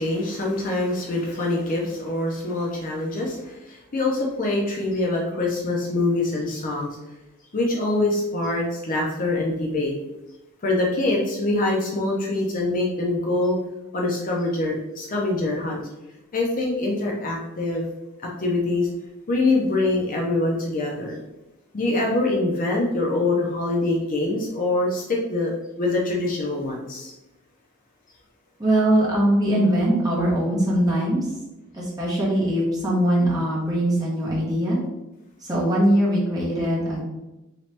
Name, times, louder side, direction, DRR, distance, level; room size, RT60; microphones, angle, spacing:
voice 1, 0.0-7.0 7.5-9.9 10.6-13.6 13.9-15.8 16.3-17.8 18.2-18.9 19.3-21.2 21.7-25.5 25.8-27.1, left 2 dB, 40° left, -2 dB, 0.5 m, -24 dB
voice 2, 28.6-31.2 31.7-34.8 35.5-37.0, right 1 dB, 15° right, -6 dB, 0.9 m, -21 dB
3.0 x 2.9 x 3.2 m, 1.0 s
head